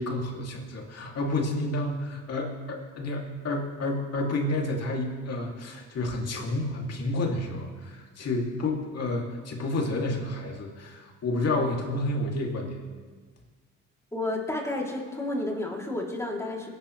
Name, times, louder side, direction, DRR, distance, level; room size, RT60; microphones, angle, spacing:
voice 1, 0.0-12.8, left 2 dB, 55° left, 0 dB, 2.8 m, -30 dB
voice 2, 14.1-16.7, left 2 dB, 10° left, -2 dB, 3.2 m, -31 dB
22.0 x 11.0 x 3.3 m, 1.5 s
cardioid pair, 90°, 30 cm